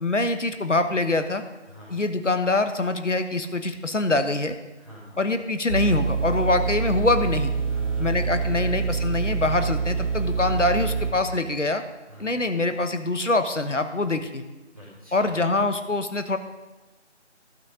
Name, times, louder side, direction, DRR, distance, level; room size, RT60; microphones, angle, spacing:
voice 1, 0.0-1.4 1.9-4.6 5.2-7.5 8.0-11.8 12.2-14.4 15.1-16.4, left 2 dB, 75° left, 9 dB, 1.2 m, -24 dB
voice 2, 1.7-2.0 4.8-5.2 7.7-8.7 12.1-12.4 14.7-15.4, equal, 30° right, -8 dB, 2.3 m, -45 dB
sound 1, 5.7-11.1, right 5 dB, 75° right, 1.5 m, -26 dB
12.0 x 8.3 x 5.0 m, 1.2 s
figure-of-eight pair, 180°, 37 cm